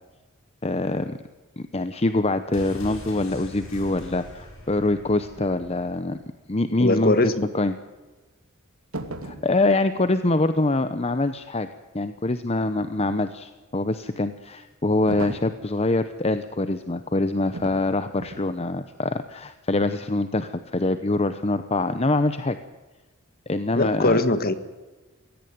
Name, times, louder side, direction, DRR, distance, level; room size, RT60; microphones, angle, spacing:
voice 1, 0.6-1.2 1.6-6.2 6.5-7.1 7.5-7.7 9.2-11.7 11.9-22.6 23.5-24.2, left 2 dB, 30° left, 11 dB, 0.9 m, -24 dB
sound 1, 2.5-6.3 6.6-6.7, left 1 dB, 75° left, 7.1 m, -42 dB
voice 2, 6.8-7.5 23.8-24.5, left 2 dB, 45° left, 12 dB, 1.7 m, -21 dB
sound 2, 8.9-9.5 15.1-15.6 17.5-17.9 18.2-18.5, right 2 dB, 85° right, 2.8 m, -35 dB
23.0 x 17.5 x 9.4 m, 1.2 s
head